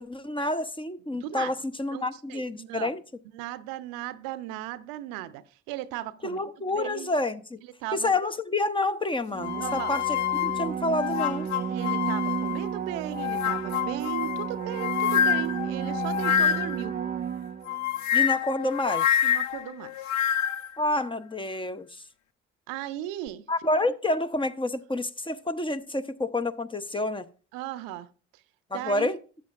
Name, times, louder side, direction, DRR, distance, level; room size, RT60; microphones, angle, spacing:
voice 1, 0.0-3.0 6.2-7.6 7.9-11.5 18.1-19.1 20.8-22.0 23.5-27.3 28.7-29.2, left 2 dB, 15° left, 0.7 m, -29 dB
voice 2, 1.1-1.5 1.9-2.0 2.3-2.9 3.3-6.4 6.7-7.1 7.8-8.2 9.6-10.0 11.7-16.9 19.2-20.1 22.7-23.4 27.5-28.1 28.7-29.2, right 14 dB, 75° right, 0.6 m, -36 dB
sound 1, 9.3-17.9 23.3-23.4, right 8 dB, 25° right, 0.4 m, -32 dB
sound 2, 9.4-12.7 13.1-16.9 17.7-20.7, left 10 dB, 55° left, 0.5 m, -27 dB
13.0 x 8.9 x 2.4 m
hypercardioid pair, 45°, 35 cm